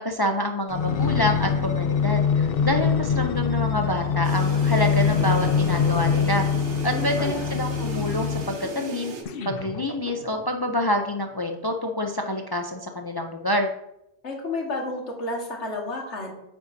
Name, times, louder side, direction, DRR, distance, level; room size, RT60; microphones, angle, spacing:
voice 1, 0.0-6.5 6.8-9.1 9.4-13.7, left 1 dB, 40° left, 4 dB, 0.3 m, -27 dB
sound 1, 0.7-8.7 9.3-10.5 11.1-11.2, left 6 dB, 60° left, 0.8 m, -24 dB
sound 2, 4.2-9.2, right 3 dB, 75° right, 1.3 m, -36 dB
voice 2, 6.9-7.6 14.2-16.3, left 2 dB, 80° left, 0 dB, 1.9 m, -31 dB
9.0 x 7.9 x 2.7 m, 0.88 s
omnidirectional pair, 1.2 m